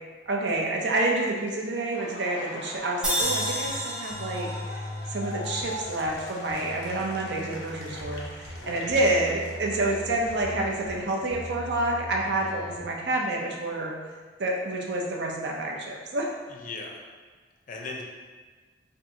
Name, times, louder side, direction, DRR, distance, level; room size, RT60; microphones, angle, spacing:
voice 1, 0.3-13.9 14.4-16.3, right 2 dB, 70° right, -1 dB, 0.6 m, -28 dB
Laughter, 1.7-11.6 11.9-13.9, left 1 dB, 90° left, 0.7 m, -43 dB
sound 1, 3.0-6.3, equal, 5° right, 0.5 m, -31 dB
sound 2, 3.2-3.8 4.1-6.1 6.5-8.6 8.9-10.9 11.3-12.8, left 1 dB, 40° right, 1.0 m, -39 dB
voice 2, 8.5-8.9 16.5-17.0 17.7-18.0, left 3 dB, 50° left, 0 dB, 0.5 m, -38 dB
4.4 x 2.6 x 2.7 m, 1.4 s
head